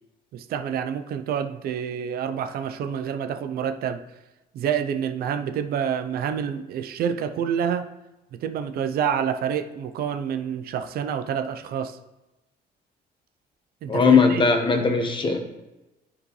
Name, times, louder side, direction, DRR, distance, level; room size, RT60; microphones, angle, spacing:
voice 1, 0.3-4.0 4.5-7.9 8.3-12.0 13.8-14.5, right 8 dB, 65° right, 9 dB, 0.6 m, -28 dB
voice 2, 13.9-15.4, left 5 dB, 30° left, 5 dB, 1.1 m, -19 dB
10.0 x 4.9 x 3.2 m, 1.0 s
cardioid pair, 110°, 17 cm